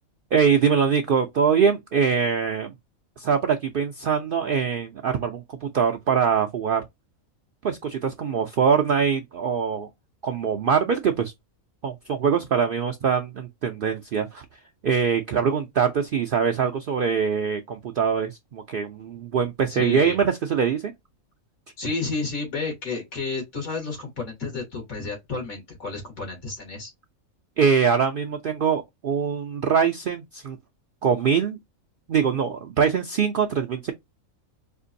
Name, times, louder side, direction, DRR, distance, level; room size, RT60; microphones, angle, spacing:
voice 1, 0.3-2.7 3.2-6.8 7.6-9.9 10.2-11.3 11.8-14.4 14.8-20.9 27.6-30.6 31.0-31.6 32.1-33.9, right 6 dB, 70° right, 0.5 m, -23 dB
voice 2, 19.7-20.2 21.8-26.9, left 4 dB, 85° left, 2.5 m, -31 dB
4.4 x 2.5 x 2.6 m
omnidirectional pair, 1.4 m